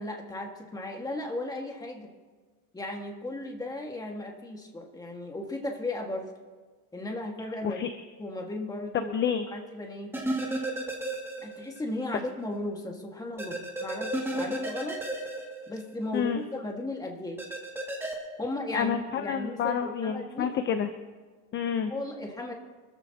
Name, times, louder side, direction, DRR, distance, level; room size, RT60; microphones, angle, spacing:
voice 1, 0.0-2.1 2.7-6.3 6.9-7.8 8.2-9.2 9.5-10.1 11.4-15.0 15.7-17.4 18.4-20.5 21.9-22.5, left 2 dB, 10° left, 1 dB, 1.8 m, -35 dB
voice 2, 7.6-8.0 9.1-9.5 16.1-16.4 18.7-20.9 21.5-21.9, left 8 dB, 30° left, 8 dB, 0.7 m, -29 dB
sound 1, 10.1-11.8 12.1-12.2 13.4-16.2 17.4-18.1, right 1 dB, 5° right, 2.4 m, -33 dB
26.0 x 14.0 x 2.9 m, 1.4 s
cardioid pair, 145°, 38 cm